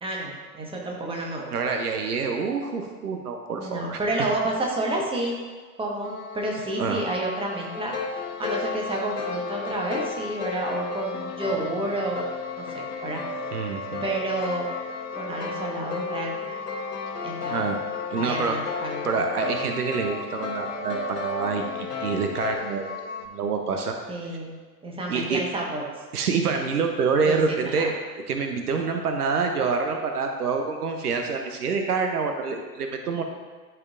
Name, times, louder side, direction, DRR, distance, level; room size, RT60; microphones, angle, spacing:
voice 1, 0.0-1.5 3.5-5.4 5.8-7.9 8.4-12.3 12.6-13.2 14.0-14.7 15.1-16.4 17.2-17.7 18.2-19.1 24.1-24.6 24.8-25.8 27.2-27.9, right 2 dB, 10° right, -1 dB, 1.3 m, -30 dB
voice 2, 1.5-4.0 6.8-7.0 13.5-14.0 17.5-17.8 18.1-18.6 19.0-22.9 23.3-23.9 25.1-25.4 26.1-27.9 28.3-33.2, right 5 dB, 75° right, 4 dB, 0.8 m, -26 dB
sound 1, 6.0-23.3, left 5 dB, 55° left, 0.8 m, -39 dB
sound 2, 7.7-22.6, left 4 dB, 80° left, 1.2 m, -34 dB
12.0 x 4.5 x 2.5 m, 1.5 s
figure-of-eight pair, 85°, 46 cm